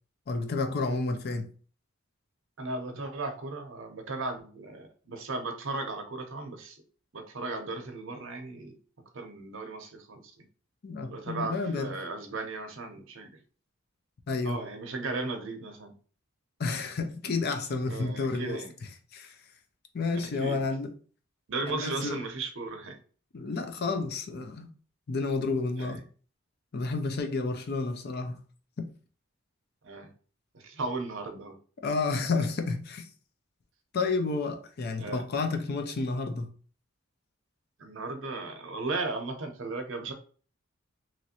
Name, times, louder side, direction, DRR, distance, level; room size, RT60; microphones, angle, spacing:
voice 1, 0.3-1.5 10.8-11.9 14.3-14.6 16.6-18.6 19.1-19.4 19.9-20.9 21.7-22.2 23.3-24.7 25.1-26.0 26.7-28.4 28.8-28.9 31.8-33.1 33.9-36.5, left 3 dB, 50° left, 0.5 m, -30 dB
voice 2, 2.6-6.8 7.1-8.8 9.1-10.3 11.1-13.3 14.4-15.9 17.9-18.7 20.3-20.6 21.5-23.0 25.8-26.0 29.8-30.1 30.5-31.6 35.0-35.2 37.8-40.1, right 3 dB, 60° right, 0.6 m, -36 dB
3.0 x 2.5 x 2.7 m
head